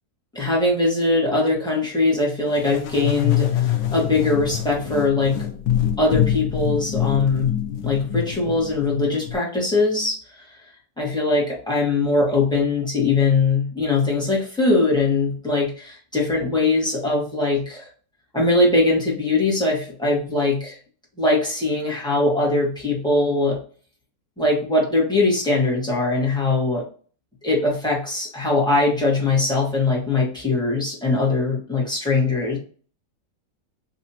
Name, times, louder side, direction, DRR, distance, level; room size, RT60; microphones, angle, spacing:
voice 1, 0.3-5.5 6.0-7.5 7.8-10.4 11.0-17.9 18.3-20.8 21.2-23.6 24.4-26.8 27.4-32.6, left 2 dB, 5° left, -5 dB, 1.1 m, -21 dB
sound 1, 2.6-9.4, left 10 dB, 85° left, 1.3 m, -25 dB
4.0 x 2.7 x 2.8 m, 0.42 s
omnidirectional pair, 1.9 m